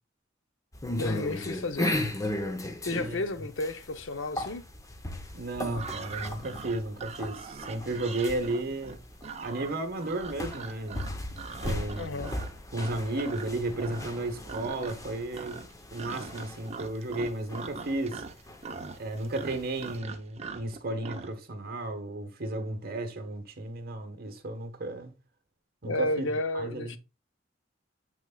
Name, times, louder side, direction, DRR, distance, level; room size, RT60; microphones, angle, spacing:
sound 1, 0.7-19.9, left 1 dB, 15° left, 0.8 m, -37 dB
voice 1, 1.0-1.9 2.8-4.6 12.0-12.3 25.8-27.0, left 2 dB, 70° left, 0.7 m, -32 dB
voice 2, 2.9-3.5 5.3-9.0 9.4-11.0 11.6-12.3 12.7-18.2 19.0-25.1 25.8-26.3 26.5-27.0, right 2 dB, 50° right, 1.2 m, -34 dB
sound 2, 5.7-13.5 13.8-14.2 14.5-15.1 15.3-21.3, right 5 dB, 35° right, 0.7 m, -42 dB
7.2 x 6.2 x 2.3 m
head